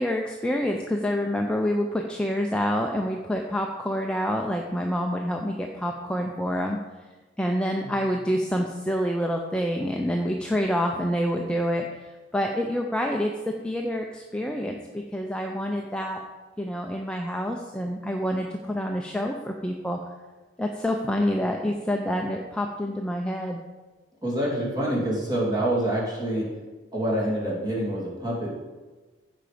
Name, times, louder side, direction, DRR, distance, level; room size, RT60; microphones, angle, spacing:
voice 1, 0.0-6.8 7.4-11.9 12.3-16.2 16.6-20.0 20.6-23.6, equal, 5° left, 1 dB, 0.5 m, -27 dB
voice 2, 24.2-26.5 26.9-28.5, right 1 dB, 20° right, -4 dB, 2.5 m, -26 dB
15.0 x 5.1 x 5.0 m, 1.3 s
head